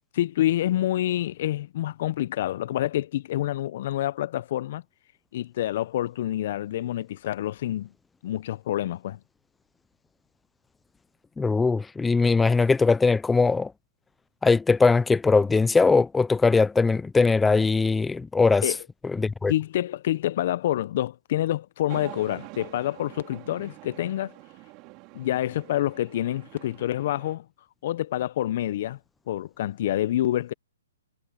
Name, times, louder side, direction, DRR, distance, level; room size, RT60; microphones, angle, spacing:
voice 1, 0.1-4.8 5.3-7.9 8.2-9.2 18.6-18.8 19.5-24.3 25.1-27.4 27.8-29.0 29.3-30.5, left 13 dB, 50° left, 0.7 m, -27 dB
voice 2, 11.4-13.7 14.4-18.7 19.0-19.5, left 4 dB, 10° left, 0.5 m, -21 dB
sound 1, 21.9-27.4, right 25 dB, 30° right, 3.7 m, -45 dB
hypercardioid pair, 135°, 0 cm